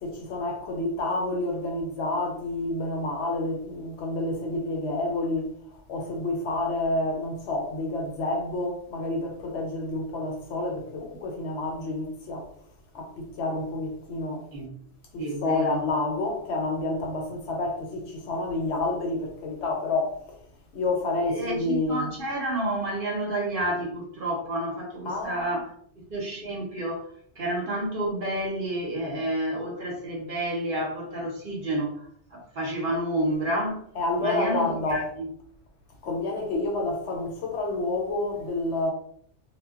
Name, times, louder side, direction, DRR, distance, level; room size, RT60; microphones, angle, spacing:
voice 1, 0.0-12.5 12.9-14.5 15.1-20.4 20.7-22.1 25.1-25.4 33.9-35.1 36.0-38.9, left 2 dB, 65° left, 0.8 m, -29 dB
voice 2, 15.2-15.8 21.2-25.7 26.1-27.1 27.4-33.9 34.2-35.3, right 1 dB, 50° right, 0.9 m, -30 dB
2.2 x 2.1 x 3.5 m
omnidirectional pair, 1.3 m